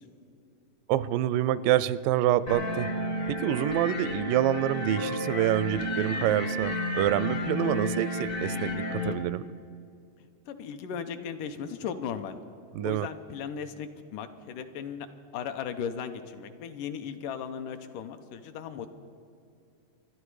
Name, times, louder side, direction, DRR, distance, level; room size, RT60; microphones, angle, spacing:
voice 1, 0.9-2.9 3.3-9.5 12.7-13.1, right 12 dB, 85° right, 17 dB, 2.2 m, -27 dB
sound 1, 2.5-9.1, equal, 55° left, 0.9 m, -31 dB
voice 2, 10.5-12.4 12.8-15.1 15.3-18.9, left 7 dB, 80° left, 8 dB, 2.2 m, -37 dB
27.0 x 11.5 x 4.8 m, 2.5 s
omnidirectional pair, 3.9 m